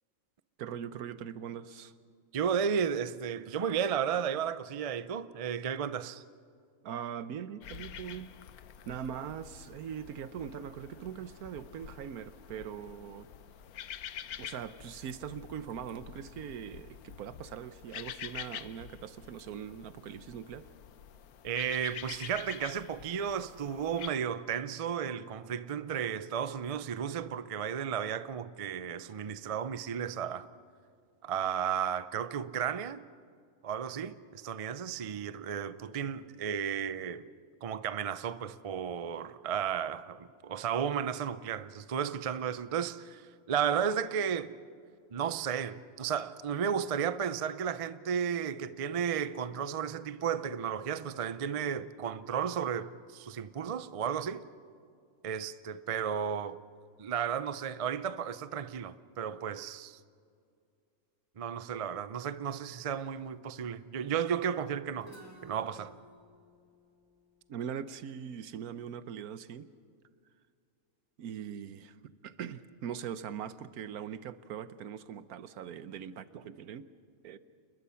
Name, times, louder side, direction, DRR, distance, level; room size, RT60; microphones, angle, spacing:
voice 1, 0.6-1.9 6.8-8.3 8.9-13.3 14.4-20.7 67.5-69.7 71.2-72.0 72.2-76.9 77.2-77.4, right 8 dB, 85° right, 1.3 m, -41 dB
voice 2, 2.3-6.2 21.4-30.5 31.2-33.0 33.6-37.3 37.6-44.5 45.1-54.5 55.2-56.6 57.0-60.0 61.4-65.1 65.4-65.9, right 8 dB, 55° right, 0.4 m, -33 dB
sound 1, 7.6-24.1, left 9 dB, 90° left, 1.3 m, -47 dB
Guitar, 65.0-68.8, right 1 dB, 15° right, 3.4 m, -57 dB
29.5 x 21.0 x 5.7 m
omnidirectional pair, 1.5 m